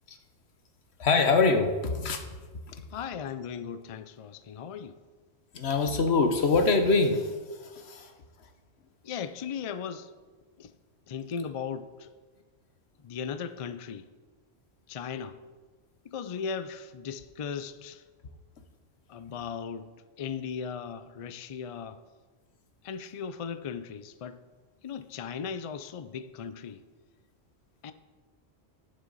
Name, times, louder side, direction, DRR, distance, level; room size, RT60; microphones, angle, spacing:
voice 1, 1.0-2.2 5.5-7.3 7.6-8.1, left 4 dB, 80° left, 1.3 m, -24 dB
voice 2, 2.9-5.0 9.0-10.1 10.6-10.7 11.1-12.1 13.0-14.1 14.9-15.4 16.0-18.0 19.1-19.9 20.2-22.0 22.8-24.4 24.8-26.8 27.8-27.9, left 6 dB, 45° left, 0.4 m, -37 dB
18.5 x 6.4 x 4.1 m
omnidirectional pair, 1.1 m